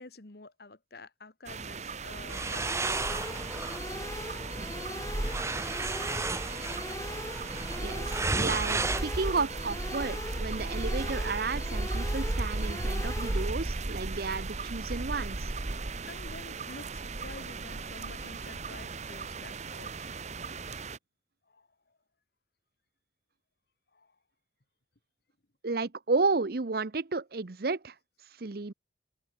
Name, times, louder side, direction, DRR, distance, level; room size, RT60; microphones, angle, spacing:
voice 1, 0.0-3.6 16.1-20.1 21.5-22.0 23.9-24.2, left 3 dB, 60° left, 1.6 m, -49 dB
sound 1, 1.5-21.0, right 3 dB, 40° right, 1.0 m, -36 dB
sound 2, 2.1-9.0, right 3 dB, 15° right, 0.8 m, -34 dB
sound 3, 2.5-13.5, left 2 dB, 20° left, 1.2 m, -41 dB
voice 2, 7.8-15.5 25.6-27.9 28.4-28.7, right 4 dB, 60° right, 0.8 m, -32 dB
head